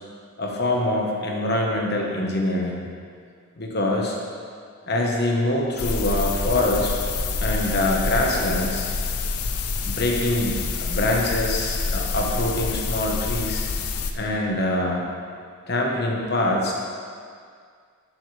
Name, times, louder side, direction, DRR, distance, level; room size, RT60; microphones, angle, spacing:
voice 1, 0.4-2.9 3.6-4.2 4.9-8.9 9.8-10.5 10.8-13.6 14.1-15.1 15.7-16.7, left 1 dB, 45° left, -1 dB, 1.3 m, -24 dB
sound 1, 5.8-14.1, left 4 dB, 85° left, 0.6 m, -27 dB
12.0 x 7.9 x 3.4 m, 2.1 s
head